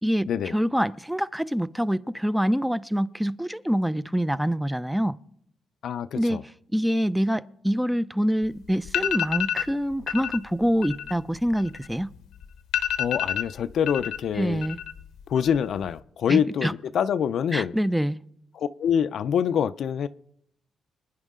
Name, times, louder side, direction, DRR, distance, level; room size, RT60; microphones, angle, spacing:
voice 1, 0.0-5.2 6.2-6.4 6.7-12.1 14.3-14.8 16.3-16.7 17.5-18.2, equal, 5° right, 0.4 m, -25 dB
voice 2, 5.8-6.4 13.0-14.6 15.3-17.7 18.5-20.1, left 8 dB, 70° left, 0.4 m, -25 dB
sound 1, 8.4-8.5 8.9-9.7 10.1-10.4 10.7-12.2 12.4-12.5 12.7-14.2 14.5-15.1 15.4-15.9, left 10 dB, 90° left, 0.8 m, -28 dB
26.0 x 9.7 x 3.7 m
cardioid pair, 110°, 0 cm